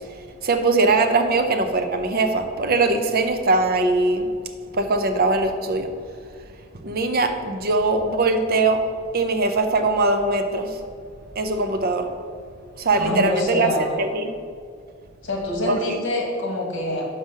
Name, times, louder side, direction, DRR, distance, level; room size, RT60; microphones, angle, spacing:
voice 1, 0.4-4.3 4.7-5.9 6.8-8.8 9.1-10.8 11.3-12.1 12.7-13.7 14.0-14.3 15.7-16.0, right 3 dB, 50° right, 6 dB, 0.6 m, -21 dB
voice 2, 13.0-13.9 15.2-17.1, left 1 dB, 65° left, 0 dB, 1.6 m, -25 dB
5.6 x 5.0 x 6.3 m, 2.1 s
head